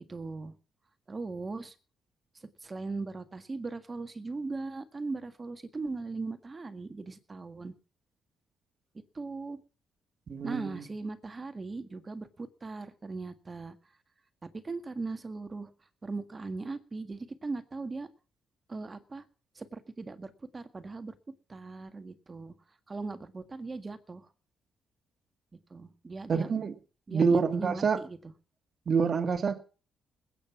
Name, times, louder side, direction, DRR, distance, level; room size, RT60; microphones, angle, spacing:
voice 1, 0.1-0.5 1.1-1.7 2.6-7.7 9.2-9.6 10.4-13.8 14.4-15.7 16.0-18.1 18.7-19.2 19.6-21.2 21.5-22.5 22.9-24.3 25.7-26.5 27.1-28.3, right 3 dB, 30° right, 1.8 m, -39 dB
voice 2, 10.3-10.8 26.3-26.7 27.1-28.0 28.9-29.6, right 5 dB, 45° right, 1.9 m, -27 dB
20.5 x 9.0 x 6.0 m
cardioid pair, 90°, 0 cm